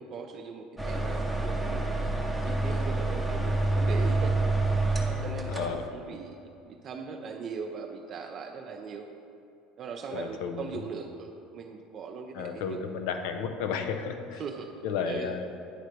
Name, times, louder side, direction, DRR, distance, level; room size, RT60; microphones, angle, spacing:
voice 1, 0.0-2.0 2.4-4.3 5.1-6.4 6.7-9.1 9.8-12.8 14.4-14.7 15.1-15.4, right 5 dB, 45° right, 2 dB, 0.4 m, -39 dB
sound 1, 0.8-5.9, right 2 dB, ahead, 0.8 m, -28 dB
voice 2, 5.5-5.8 10.1-10.8 12.3-14.4 14.8-15.4, left 6 dB, 75° left, 6 dB, 0.6 m, -33 dB
9.2 x 3.2 x 5.1 m, 2.7 s
supercardioid pair, 90°, 0 cm